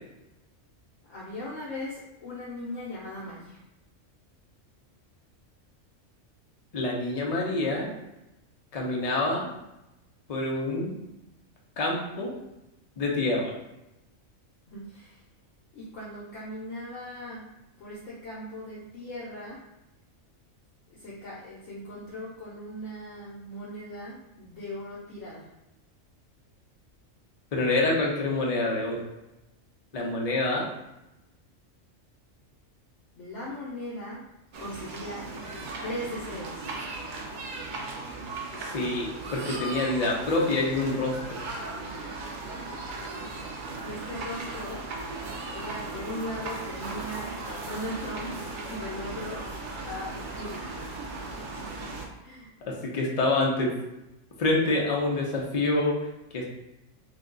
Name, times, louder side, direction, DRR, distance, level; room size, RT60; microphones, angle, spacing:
voice 1, 1.1-3.6 14.7-15.2 15.7-17.5 17.8-19.6 20.9-25.5 33.2-34.3 34.6-35.3 35.8-36.7 43.7-44.9 45.5-48.4 48.7-49.5 49.8-50.7 51.1-51.3 52.2-52.5, left 1 dB, 75° left, -6 dB, 1.0 m, -38 dB
voice 2, 6.7-7.9 8.7-9.5 10.3-10.9 11.8-12.4 13.0-13.5 27.5-29.0 29.9-30.7 38.6-41.4 52.6-53.7 54.4-55.9 56.3-56.5, left 2 dB, 50° left, -2 dB, 0.4 m, -27 dB
sound 1, 34.5-52.1, right 3 dB, 70° right, 0.4 m, -37 dB
2.7 x 2.2 x 3.7 m, 0.93 s
omnidirectional pair, 1.4 m